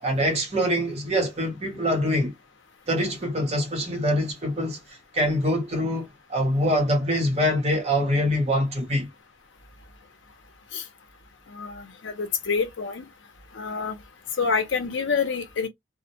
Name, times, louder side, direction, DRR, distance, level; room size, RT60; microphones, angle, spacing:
voice 1, 0.0-2.3 2.9-9.1, equal, 35° right, 0.8 m, -24 dB
voice 2, 11.5-13.1 13.5-14.0 14.4-15.7, left 5 dB, 75° left, 0.6 m, -27 dB
2.1 x 2.1 x 2.8 m
head